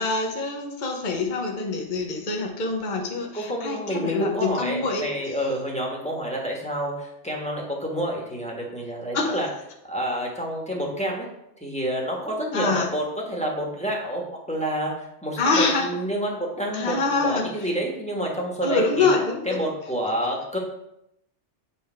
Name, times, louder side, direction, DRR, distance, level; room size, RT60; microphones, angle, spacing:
voice 1, 0.0-5.1 9.1-9.4 12.5-12.9 15.4-15.9 16.7-17.5 18.6-19.6, left 3 dB, 45° left, 2 dB, 1.0 m, -25 dB
voice 2, 3.3-9.5 9.9-11.3 11.6-16.9 17.2-19.1 19.4-20.6, equal, 5° left, -1 dB, 1.3 m, -28 dB
8.2 x 3.5 x 4.4 m, 0.81 s
omnidirectional pair, 1.2 m